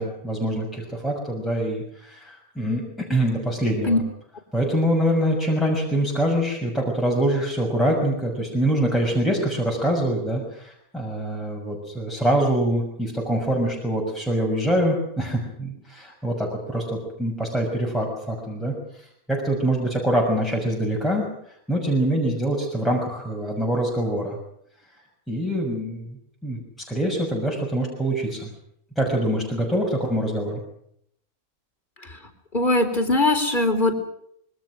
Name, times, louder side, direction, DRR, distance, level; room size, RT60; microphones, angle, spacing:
voice 1, 0.0-4.0 4.5-21.3 21.7-24.4 25.3-26.2 26.4-26.6 26.9-28.5 29.0-30.6, right 1 dB, ahead, -2 dB, 6.3 m, -24 dB
voice 2, 32.5-33.9, left 2 dB, 35° left, 7 dB, 4.2 m, -20 dB
26.5 x 24.0 x 6.4 m, 0.71 s
omnidirectional pair, 1.5 m